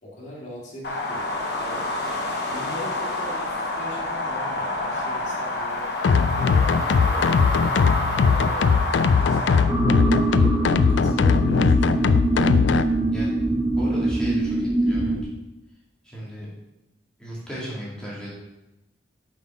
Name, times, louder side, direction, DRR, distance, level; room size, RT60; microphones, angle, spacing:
voice 1, 0.0-1.3 1.6-5.9 6.3-7.4 8.3-8.8 9.1-10.5 10.8-12.6, left 1 dB, 45° left, -5 dB, 2.2 m, -41 dB
sound 1, 0.8-9.6, left 2 dB, 65° left, 1.3 m, -27 dB
sound 2, 6.0-12.9, left 5 dB, 90° left, 0.4 m, -20 dB
sound 3, 9.7-15.2, right 2 dB, 15° right, 0.7 m, -23 dB
voice 2, 13.1-13.4 13.7-15.3 16.0-16.5 17.2-18.3, equal, 5° left, -7 dB, 2.1 m, -35 dB
5.7 x 5.4 x 5.1 m, 0.93 s
head